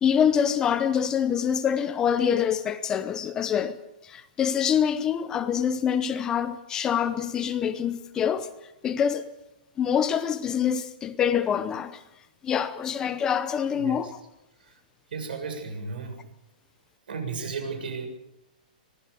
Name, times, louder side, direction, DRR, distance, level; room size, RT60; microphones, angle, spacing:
voice 1, 0.0-3.8 4.0-8.5 8.8-9.3 9.8-12.0 12.4-14.1, left 8 dB, 15° left, 0.7 m, -25 dB
voice 2, 13.7-14.1 14.6-14.8 15.1-16.2 17.1-18.1, right 4 dB, 75° right, 7.2 m, -34 dB
25.5 x 19.0 x 6.9 m
hypercardioid pair, 170°, 5 cm